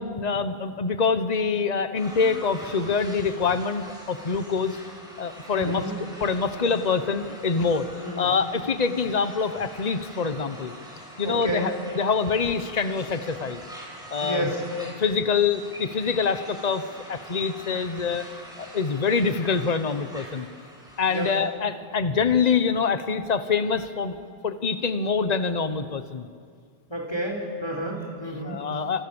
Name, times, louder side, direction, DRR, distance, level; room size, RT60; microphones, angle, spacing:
voice 1, 0.1-4.8 5.2-5.9 6.2-7.9 8.2-10.7 11.2-13.6 14.1-16.8 17.1-18.3 18.6-20.5 21.0-24.2 24.4-26.3 28.4-29.1, left 5 dB, 40° left, 10 dB, 1.3 m, -25 dB
sound 1, 1.9-21.4, equal, 5° right, 6.0 m, -44 dB
voice 2, 5.5-5.9 8.0-8.3 11.2-11.7 14.2-14.6 21.1-21.3 26.9-28.6, right 1 dB, 25° left, 0 dB, 4.2 m, -30 dB
27.0 x 27.0 x 7.2 m, 2.1 s
omnidirectional pair, 1.1 m